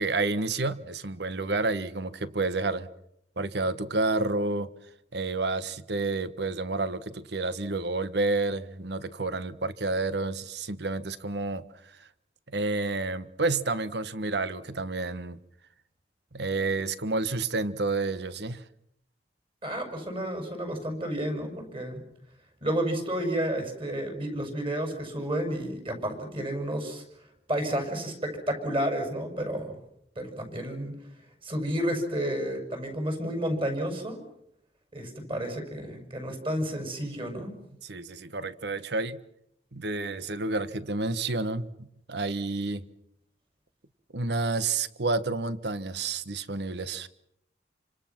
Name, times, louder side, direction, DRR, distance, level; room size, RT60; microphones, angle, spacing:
voice 1, 0.0-2.9 3.4-4.7 5.1-11.6 12.0-12.1 12.5-15.4 16.3-18.6 37.8-39.2 39.7-42.8 44.1-47.1, right 3 dB, 70° right, 1.3 m, -30 dB
voice 2, 19.6-22.0 22.6-27.0 27.5-29.8 30.1-30.9 31.4-34.2 34.9-37.6, right 1 dB, 30° right, 6.6 m, -31 dB
29.0 x 26.0 x 6.0 m
head